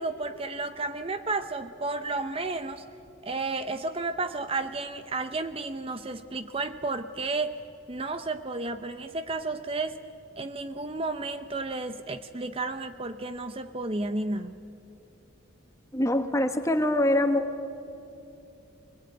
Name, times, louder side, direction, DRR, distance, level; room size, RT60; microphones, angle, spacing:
voice 1, 0.0-2.8 3.2-7.6 7.9-10.0 10.4-14.6, right 3 dB, 30° right, 10 dB, 0.6 m, -32 dB
voice 2, 15.9-17.4, left 1 dB, 15° left, 7 dB, 1.3 m, -24 dB
23.0 x 21.0 x 9.2 m, 2.8 s
head